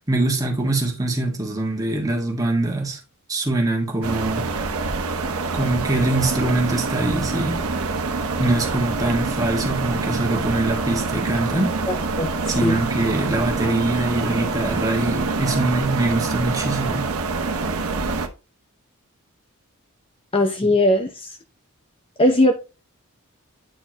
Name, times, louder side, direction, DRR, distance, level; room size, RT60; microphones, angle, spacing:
voice 1, 0.1-3.0 3.3-4.4 5.5-7.6 8.4-11.7 12.5-17.0 20.6-20.7, right 2 dB, 15° right, 1.6 m, -23 dB
sound 1, 4.0-18.3, right 3 dB, 80° right, 1.0 m, -26 dB
voice 2, 11.9-12.3 12.6-12.8 20.3-21.4 22.2-22.5, left 1 dB, 25° left, 0.6 m, -19 dB
9.0 x 4.3 x 2.8 m
head